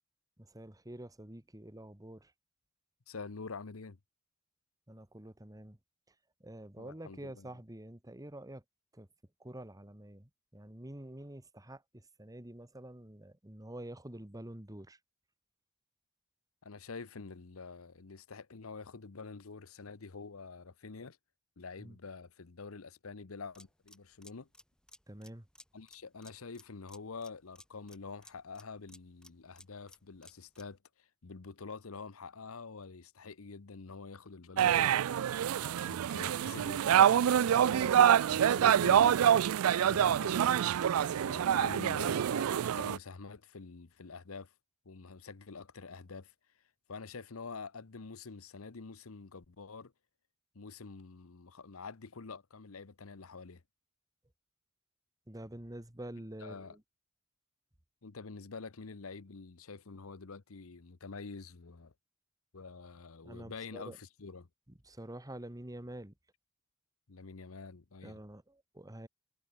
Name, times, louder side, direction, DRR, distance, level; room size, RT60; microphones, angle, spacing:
voice 1, 0.4-2.3 4.9-5.8 6.4-8.6 8.9-9.1 9.4-15.0 21.8-22.0 25.1-25.5 39.9-40.2 55.3-56.8 63.2-64.0 64.9-66.1 68.0-69.1, right 1 dB, 15° right, 1.7 m, -47 dB
voice 2, 3.1-4.0 6.8-7.5 16.6-21.2 21.6-24.5 25.7-35.0 35.6-39.2 39.8-44.5 44.8-46.3 46.9-49.9 50.5-53.6 56.4-56.8 58.0-61.9 62.5-64.5 67.1-68.2, left 4 dB, 75° left, 0.9 m, -47 dB
sound 1, 23.5-30.8, left 1 dB, 5° left, 6.2 m, -59 dB
sound 2, 34.6-43.0, right 9 dB, 80° right, 0.3 m, -26 dB
head